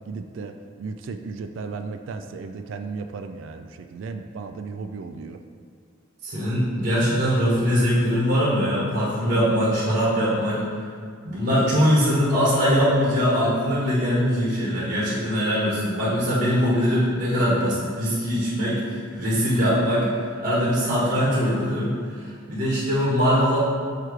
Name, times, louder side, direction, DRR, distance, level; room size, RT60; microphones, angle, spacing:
voice 1, 0.1-5.4, right 4 dB, 70° right, 7 dB, 0.3 m, -35 dB
voice 2, 6.2-10.6 11.2-20.1 20.4-23.6, equal, 50° right, -7 dB, 1.4 m, -22 dB
6.6 x 3.1 x 4.7 m, 2.1 s
head